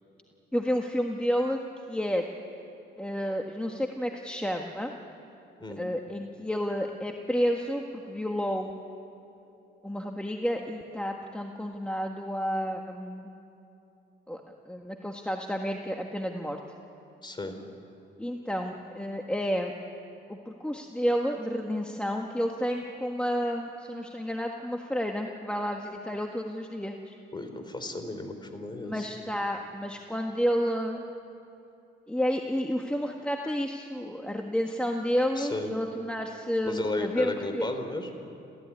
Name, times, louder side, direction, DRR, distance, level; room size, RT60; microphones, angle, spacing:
voice 1, 0.5-1.6 1.9-2.3 3.0-4.9 5.8-8.7 9.8-13.3 14.3-14.4 14.7-16.6 18.2-19.7 20.3-27.1 28.8-31.0 32.1-37.7, equal, 5° left, 2 dB, 1.5 m, -30 dB
voice 2, 17.2-17.6 27.3-29.1 35.4-35.7 36.6-38.1, left 2 dB, 25° left, 7 dB, 3.5 m, -34 dB
29.0 x 14.5 x 9.8 m, 2.9 s
cardioid pair, 90°, 20 cm